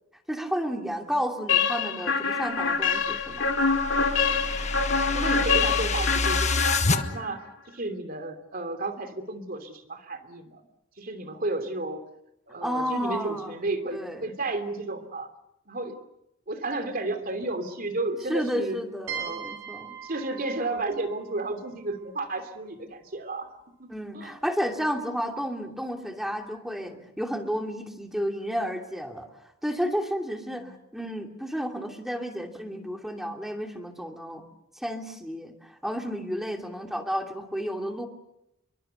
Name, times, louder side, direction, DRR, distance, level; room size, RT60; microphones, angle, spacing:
voice 1, 0.3-3.5 12.6-13.5 13.9-14.3 18.3-20.0 23.9-29.3 29.6-34.4 34.8-38.1, equal, ahead, 3 dB, 2.8 m, -32 dB
sound 1, 1.5-7.4, left 5 dB, 65° left, 2.7 m, -25 dB
sound 2, 3.0-7.0, left 3 dB, 35° left, 1.4 m, -28 dB
voice 2, 5.1-10.6 11.0-12.0 12.5-15.3 15.7-15.9 16.5-18.8 19.1-19.5 20.0-23.5 23.8-24.3 30.6-30.7 36.4-36.6, right 2 dB, 45° right, 7 dB, 3.0 m, -33 dB
sound 3, 19.1-22.7, right 7 dB, 75° right, 5.3 m, -40 dB
28.5 x 23.0 x 6.7 m, 0.85 s
head